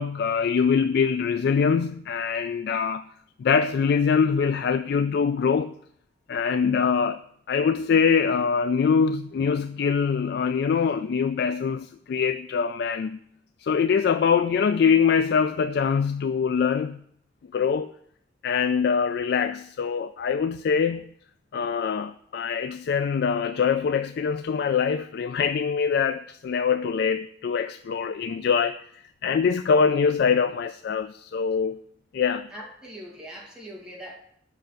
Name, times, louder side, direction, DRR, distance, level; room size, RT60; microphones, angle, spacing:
voice 1, 0.0-3.0 3.4-5.7 6.3-7.2 7.5-13.2 13.6-17.0 17.5-17.9 18.4-21.1 21.5-31.8 32.1-32.5, left 6 dB, 60° left, 0.3 m, -23 dB
voice 2, 32.5-34.1, equal, 5° right, 2.2 m, -41 dB
6.9 x 5.9 x 6.4 m
head